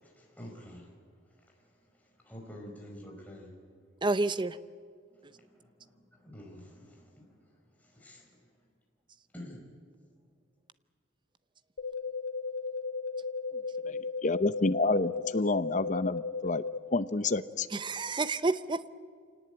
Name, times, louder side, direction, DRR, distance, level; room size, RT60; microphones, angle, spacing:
voice 1, 0.0-0.9 1.4-3.5 5.1-8.3 9.3-9.6, equal, 10° left, 0 dB, 4.6 m, -49 dB
voice 2, 4.0-4.6 17.7-18.9, right 3 dB, 25° right, 14 dB, 0.6 m, -29 dB
sound 1, 11.8-16.8, left 4 dB, 85° left, 1.4 m, -35 dB
voice 3, 13.9-16.6 16.9-17.7, left 3 dB, 40° left, 13 dB, 0.7 m, -29 dB
26.0 x 18.5 x 8.9 m, 2.1 s
head